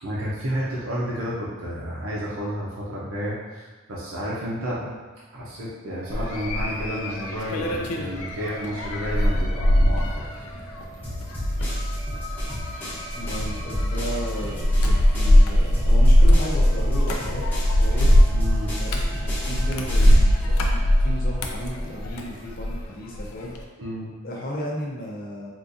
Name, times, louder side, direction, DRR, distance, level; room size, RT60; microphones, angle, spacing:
voice 1, 0.0-4.8 5.3-10.2 18.3-18.8 23.8-24.1, equal, 70° right, -7 dB, 0.6 m, -31 dB
sound 1, 6.1-22.8 23.2-23.6, equal, 85° left, 0.4 m, -20 dB
sound 2, 6.1-22.8, right 2 dB, 10° right, 0.4 m, -43 dB
sound 3, 11.0-15.4 15.7-20.4, equal, 10° left, 0.8 m, -31 dB
voice 2, 13.1-17.4 17.8-18.1 18.8-23.6 24.2-25.5, left 1 dB, 45° left, -3 dB, 0.6 m, -34 dB
3.8 x 2.5 x 2.6 m, 1.3 s
head